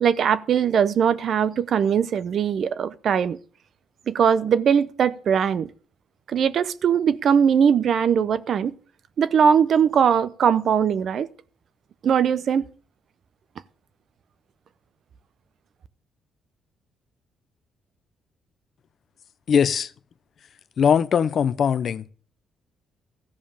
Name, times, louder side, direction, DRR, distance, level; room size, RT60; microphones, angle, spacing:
voice 1, 0.0-3.4 4.1-5.7 6.3-8.7 9.2-11.3 12.0-12.6, right 7 dB, 60° right, 0.7 m, -20 dB
voice 2, 19.5-19.9 20.8-22.1, left 7 dB, 55° left, 0.6 m, -20 dB
14.0 x 5.2 x 7.2 m
cardioid pair, 90°, 0 cm